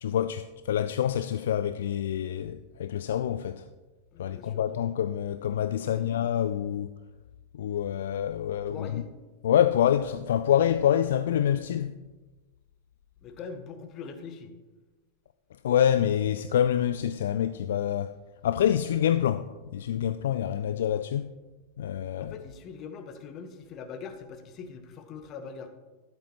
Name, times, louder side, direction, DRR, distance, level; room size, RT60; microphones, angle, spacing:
voice 1, 0.0-3.7 4.2-6.9 7.5-9.0 9.4-12.0 15.6-18.2 18.4-21.3 21.8-22.3, left 10 dB, 60° left, 0.3 m, -26 dB
voice 2, 4.1-4.6 5.8-6.1 8.5-9.1 13.2-14.5 22.2-25.7, left 5 dB, 35° left, 1.1 m, -42 dB
12.5 x 10.5 x 3.0 m
figure-of-eight pair, 90°, 0 cm